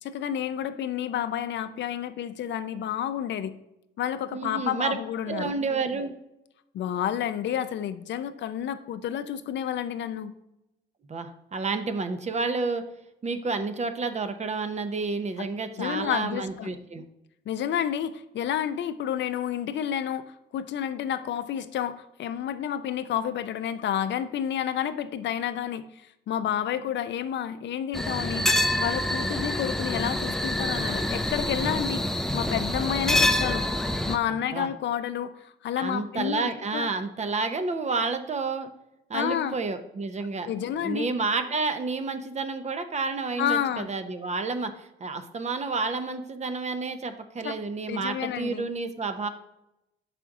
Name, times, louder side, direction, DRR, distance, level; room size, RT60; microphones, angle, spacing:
voice 1, 0.0-3.6 4.0-5.5 6.7-10.3 15.4-15.5 15.8-16.7 17.5-20.2 20.5-28.5 28.8-32.0 32.3-33.6 34.1-36.9 39.1-39.6 40.4-41.1 43.4-43.9 47.4-47.6 47.9-48.6, left 9 dB, 65° left, 11 dB, 0.5 m, -30 dB
voice 2, 4.3-5.0 5.3-6.1 11.1-12.8 13.2-17.0 34.3-34.7 35.7-38.7 39.1-40.5 40.8-49.3, right 4 dB, 35° right, 9 dB, 0.7 m, -30 dB
sound 1, 27.9-34.2, left 1 dB, ahead, 0.4 m, -26 dB
5.8 x 5.0 x 3.6 m, 0.87 s
cardioid pair, 90°, 20 cm